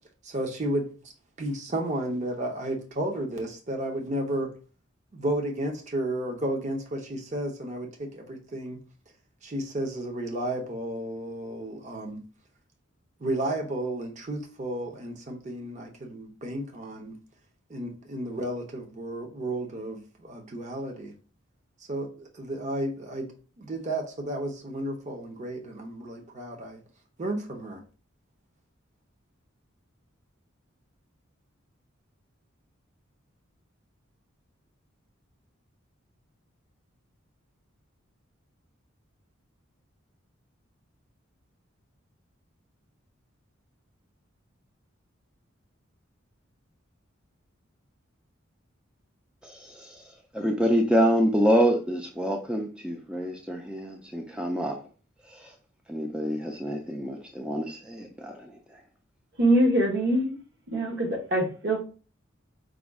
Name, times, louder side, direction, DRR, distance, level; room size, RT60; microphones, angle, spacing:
voice 1, 0.2-0.9 1.4-4.5 5.1-8.8 9.4-12.2 13.2-17.2 17.7-21.1 21.9-23.3 23.6-26.8 27.2-27.8, right 1 dB, 35° right, 0.7 m, -32 dB
voice 2, 49.4-50.0 50.3-54.8 55.4-55.5 55.9-58.5, equal, 5° right, 0.4 m, -26 dB
voice 3, 59.4-60.4 60.7-61.8, right 1 dB, 55° right, 1.1 m, -23 dB
4.9 x 2.3 x 3.5 m
head